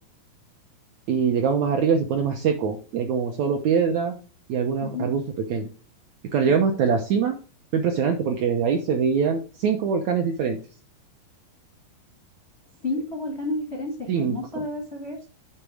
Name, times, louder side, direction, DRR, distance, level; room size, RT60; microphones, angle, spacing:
voice 1, 1.1-4.1 4.5-5.2 5.5-5.7 6.3-7.4 7.7-10.6 14.1-14.4, right 6 dB, 75° right, 3 dB, 1.7 m, -23 dB
voice 2, 6.4-6.9 12.8-15.3, left 2 dB, 55° left, 1 dB, 0.7 m, -31 dB
9.0 x 4.1 x 4.8 m, 0.36 s
omnidirectional pair, 4.2 m